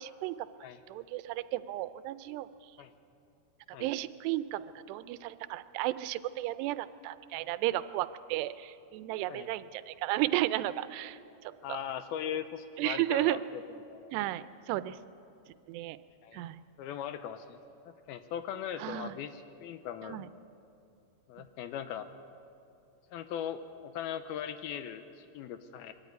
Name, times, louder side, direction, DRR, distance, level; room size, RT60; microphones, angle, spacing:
voice 1, 0.0-0.5 0.9-2.7 3.7-11.8 12.8-13.4 14.1-15.0 15.7-16.0 16.3-16.6 18.8-19.2 20.0-20.3, right 16 dB, 90° right, 14 dB, 2.8 m, -34 dB
voice 2, 11.6-13.6 13.9-14.1 16.2-16.4 16.8-17.6 17.9-20.2 21.3-22.1 23.1-25.9, left 9 dB, 80° left, 10 dB, 2.4 m, -39 dB
23.0 x 13.0 x 9.5 m, 2.6 s
omnidirectional pair, 4.8 m